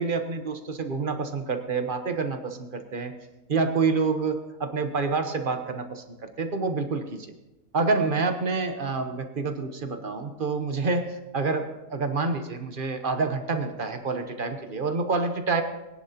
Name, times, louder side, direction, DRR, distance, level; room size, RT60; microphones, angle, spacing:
voice 1, 0.0-3.1 3.5-7.3 7.7-11.7 11.9-15.6, right 4 dB, 40° right, 7 dB, 1.0 m, -27 dB
20.5 x 10.5 x 2.9 m, 1.0 s
omnidirectional pair, 1.6 m